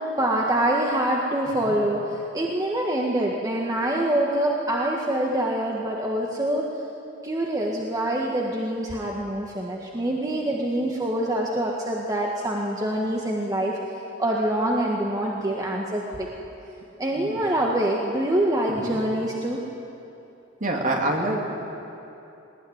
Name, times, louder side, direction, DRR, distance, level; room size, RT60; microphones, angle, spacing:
voice 1, 0.2-6.7 7.2-13.8 14.2-16.3 17.0-19.6, right 1 dB, 20° right, -2 dB, 1.6 m, -25 dB
voice 2, 18.7-19.0 20.6-21.5, right 1 dB, 40° right, 0 dB, 2.9 m, -27 dB
20.0 x 19.5 x 9.6 m, 2.9 s
head